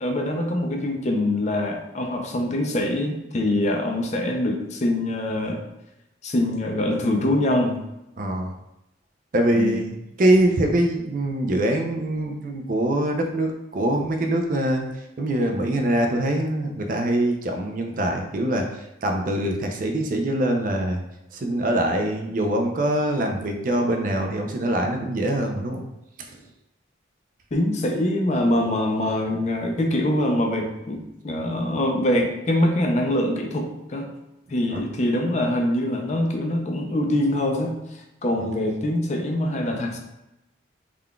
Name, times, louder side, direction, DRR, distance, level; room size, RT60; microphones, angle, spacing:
voice 1, 0.0-5.6 6.2-7.8 9.5-9.8 27.5-34.1 34.5-37.8 38.2-40.0, left 1 dB, 35° left, 3 dB, 0.4 m, -24 dB
voice 2, 8.2-8.5 9.3-14.9 15.2-18.7 19.0-21.0 21.3-25.9 26.2-26.3 34.7-34.8, right 1 dB, 45° right, 3 dB, 0.4 m, -23 dB
3.7 x 3.5 x 2.2 m, 0.89 s
head